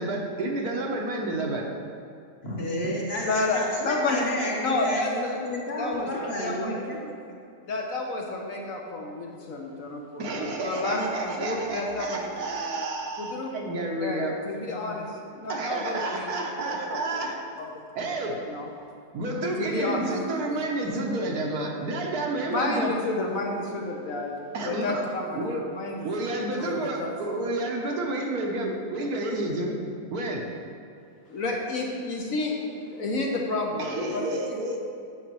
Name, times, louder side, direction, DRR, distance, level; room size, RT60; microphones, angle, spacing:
voice 1, 0.0-1.7 10.2-14.3 15.5-17.4 18.0-18.5 19.1-23.0 24.5-25.1 25.4-25.7 26.0-29.8 30.1-30.5 33.8-34.8, right 2 dB, 70° right, 1 dB, 1.3 m, -30 dB
voice 2, 2.4-7.0, left 1 dB, 40° left, -4 dB, 1.4 m, -31 dB
voice 3, 3.2-4.2 4.6-5.4 5.8-6.9 7.6-12.3 13.2-13.7 14.0-16.3 16.6-17.3 17.6-17.7 18.0-18.1 18.5-18.7 19.4-20.1 20.5-20.6 22.5-24.4 24.6-27.1 31.3-34.8, left 2 dB, 60° left, 0 dB, 1.2 m, -31 dB
10.0 x 6.4 x 3.1 m, 2.5 s
omnidirectional pair, 1.8 m